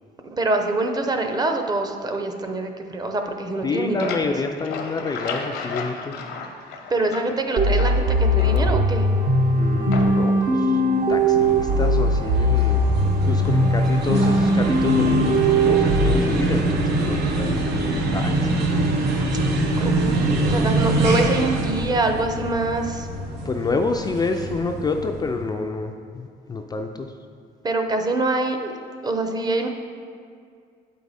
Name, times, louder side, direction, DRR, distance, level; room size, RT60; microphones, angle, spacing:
voice 1, 0.2-4.4 6.9-9.1 13.0-13.9 19.7-23.1 27.6-28.7 29.0-29.7, right 2 dB, 25° right, 5 dB, 0.7 m, -25 dB
sound 1, 3.5-7.4 7.8-9.1 9.9-10.4, left 4 dB, 75° left, 0.8 m, -33 dB
voice 2, 3.6-6.2 9.5-10.8 11.1-12.8 13.2-19.0 20.0-20.7 23.4-27.2, left 3 dB, 25° left, 4 dB, 0.4 m, -28 dB
sound 2, 7.6-16.2, equal, 50° right, 0.9 m, -19 dB
sound 3, 10.9-25.4, right 2 dB, 80° right, 0.9 m, -24 dB
7.8 x 4.7 x 4.1 m, 2.3 s
cardioid pair, 110°, 17 cm